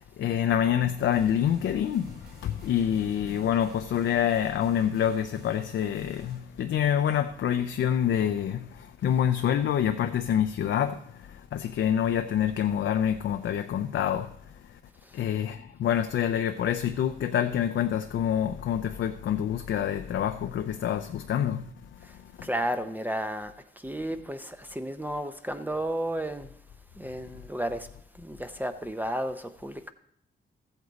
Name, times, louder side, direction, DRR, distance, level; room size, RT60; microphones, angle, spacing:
voice 1, 0.0-14.8 15.1-22.5, left 9 dB, 75° left, 0.5 m, -27 dB
sound 1, 1.0-6.4, right 1 dB, 55° right, 3.0 m, -51 dB
voice 2, 22.4-23.5 23.8-26.5 27.0-27.9 28.2-29.9, right 1 dB, 10° right, 0.5 m, -32 dB
14.0 x 8.0 x 4.0 m
wide cardioid pair, 120°, 19 cm